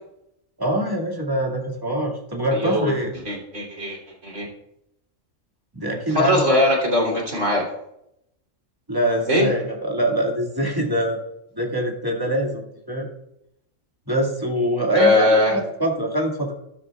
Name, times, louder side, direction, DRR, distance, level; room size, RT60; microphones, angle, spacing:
voice 1, 0.6-3.1 5.7-6.5 8.9-11.2 11.6-13.1 14.1-16.5, equal, 15° right, -1 dB, 2.0 m, -24 dB
voice 2, 2.5-2.9 3.3-4.5 6.1-7.6 9.3-9.5 14.9-15.6, left 1 dB, 75° right, -2 dB, 3.7 m, -20 dB
13.0 x 12.5 x 2.4 m, 0.80 s
omnidirectional pair, 1.3 m